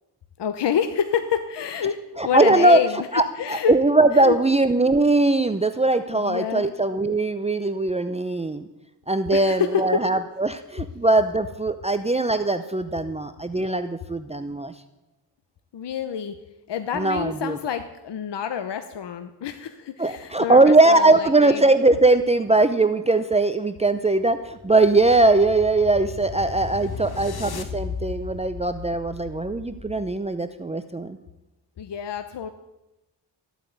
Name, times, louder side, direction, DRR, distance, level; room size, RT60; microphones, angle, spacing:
voice 1, 0.4-3.1 3.4-3.7 4.1-4.4 6.1-6.7 9.3-10.0 15.7-16.4 16.7-21.6 31.8-32.5, left 8 dB, 80° left, 8 dB, 1.0 m, -27 dB
voice 2, 2.2-2.8 3.1-8.7 9.1-14.7 16.9-17.6 20.0-31.2, right 2 dB, 15° right, 10 dB, 0.7 m, -20 dB
sound 1, 24.0-30.3, left 5 dB, 60° left, 1.7 m, -36 dB
14.0 x 9.2 x 9.2 m, 0.98 s
wide cardioid pair, 115°, 41 cm